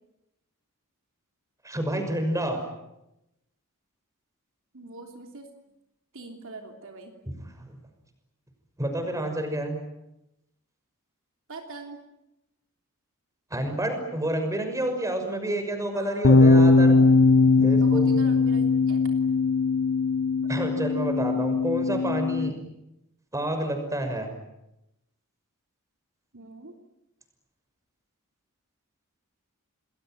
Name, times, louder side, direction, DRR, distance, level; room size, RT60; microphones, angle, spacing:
voice 1, 1.6-2.6 7.6-7.8 8.8-9.8 13.5-17.0 17.6-18.1 20.5-22.5 23.3-24.3, right 1 dB, 15° right, 6 dB, 6.0 m, -29 dB
voice 2, 4.7-5.5 6.1-7.1 11.5-12.0 15.9-16.3 17.8-19.0 19.3-19.4 26.3-26.7, right 3 dB, 65° right, 3 dB, 3.3 m, -43 dB
sound 1, 16.2-22.5, left 3 dB, 75° left, 1.2 m, -20 dB
29.0 x 21.0 x 9.3 m, 0.90 s
head